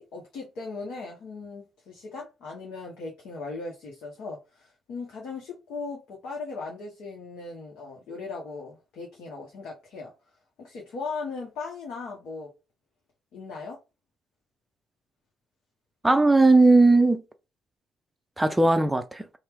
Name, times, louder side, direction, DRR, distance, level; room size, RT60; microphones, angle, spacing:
voice 1, 0.0-10.1 10.6-12.5 13.3-13.8, left 4 dB, 55° left, 0.8 m, -38 dB
voice 2, 16.0-17.2 18.4-19.3, right 2 dB, 10° right, 0.5 m, -18 dB
2.8 x 2.1 x 3.4 m
figure-of-eight pair, 45°, 0 cm